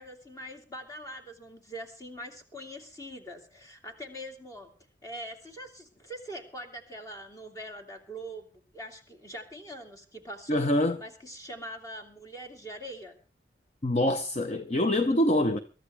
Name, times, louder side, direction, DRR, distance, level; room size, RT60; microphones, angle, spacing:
voice 1, 0.0-4.7 5.0-10.7 11.0-13.2, right 1 dB, 20° left, 2.7 m, -43 dB
voice 2, 10.5-11.0 13.8-15.6, left 1 dB, 35° left, 0.7 m, -25 dB
23.0 x 13.0 x 3.4 m
head